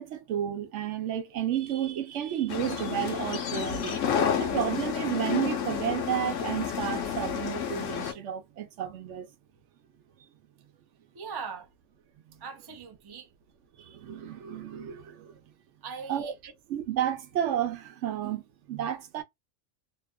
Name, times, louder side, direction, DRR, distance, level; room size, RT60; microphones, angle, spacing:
voice 1, 0.0-4.0 4.4-9.3 13.8-15.4 16.1-16.3 16.7-19.2, right 10 dB, 70° right, 0.9 m, -32 dB
sound 1, 2.5-8.1, left 7 dB, 80° left, 1.0 m, -30 dB
voice 2, 11.1-11.7 12.4-13.3 15.8-16.5, right 5 dB, 35° right, 0.4 m, -40 dB
2.9 x 2.2 x 2.2 m
omnidirectional pair, 1.3 m